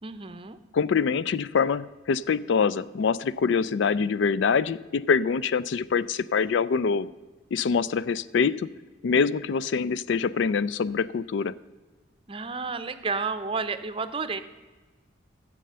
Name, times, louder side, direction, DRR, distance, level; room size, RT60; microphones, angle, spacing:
voice 1, 0.0-0.6 12.3-14.4, right 4 dB, 25° right, 11 dB, 0.6 m, -31 dB
voice 2, 0.7-7.1 7.5-8.7 9.0-11.5, left 5 dB, 65° left, 18 dB, 0.4 m, -25 dB
12.5 x 7.7 x 6.7 m, 1.3 s
head